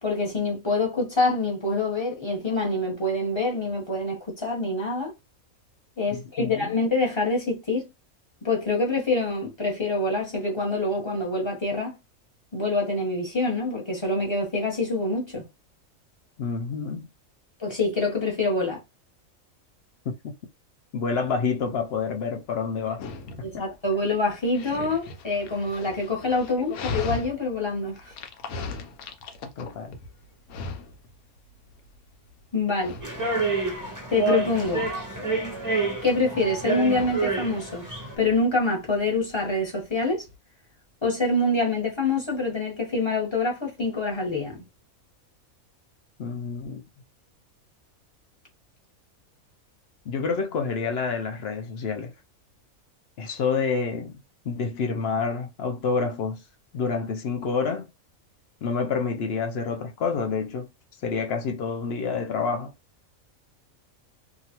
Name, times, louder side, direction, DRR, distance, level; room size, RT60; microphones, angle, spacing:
voice 1, 0.0-5.1 6.0-7.9 8.4-12.0 12.5-15.4 17.6-18.8 23.4-28.1 32.5-33.0 34.1-34.9 36.0-37.8 38.2-40.2 41.0-44.6, left 2 dB, 20° left, 1.1 m, -26 dB
voice 2, 6.1-6.7 16.4-17.1 20.1-20.3 20.9-23.1 23.4-23.7 29.4-30.0 46.2-46.8 50.1-52.1 53.2-54.2 54.5-56.4 56.7-57.9 58.6-60.7 61.0-62.7, left 5 dB, 65° left, 0.6 m, -28 dB
Dog, 21.2-40.4, left 3 dB, 90° left, 1.1 m, -40 dB
sound 1, 33.0-38.1, right 3 dB, 20° right, 0.6 m, -28 dB
2.8 x 2.4 x 2.9 m
omnidirectional pair, 1.5 m